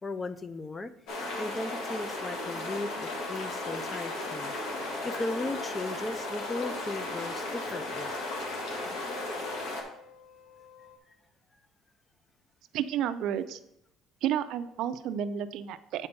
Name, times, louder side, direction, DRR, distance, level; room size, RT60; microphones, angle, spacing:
voice 1, 0.0-0.9 1.4-4.6 5.0-8.1 11.1-11.2, left 2 dB, 15° left, 0.4 m, -36 dB
sound 1, 1.1-9.8, left 2 dB, 70° left, 1.7 m, -35 dB
sound 2, 3.4-11.0, left 6 dB, 35° left, 1.0 m, -53 dB
voice 2, 12.7-13.6 14.2-16.1, right 9 dB, 65° right, 0.4 m, -31 dB
8.1 x 4.3 x 5.3 m
cardioid pair, 150°, 0 cm